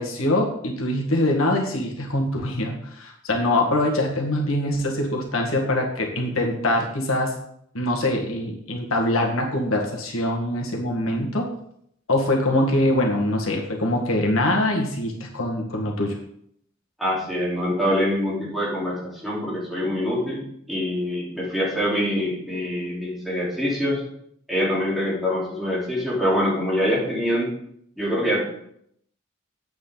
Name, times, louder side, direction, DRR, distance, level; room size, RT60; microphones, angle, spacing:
voice 1, 0.0-7.3 7.7-11.5 12.1-16.1, left 1 dB, 85° left, 1 dB, 1.7 m, -23 dB
voice 2, 17.0-19.0 19.2-24.0 24.5-27.5 28.0-28.4, equal, ahead, -8 dB, 3.7 m, -24 dB
9.5 x 7.9 x 3.9 m, 0.71 s
head